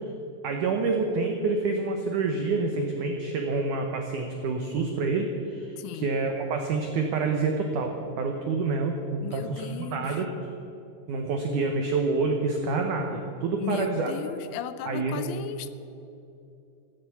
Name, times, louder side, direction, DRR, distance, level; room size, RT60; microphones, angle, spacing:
voice 1, 0.4-10.3 11.1-14.1 14.8-15.2, right 4 dB, 85° right, 3 dB, 1.7 m, -27 dB
voice 2, 5.8-6.1 9.2-10.3 13.6-15.7, left 11 dB, 80° left, 12 dB, 2.8 m, -36 dB
15.5 x 10.5 x 8.3 m, 2.7 s
omnidirectional pair, 5.2 m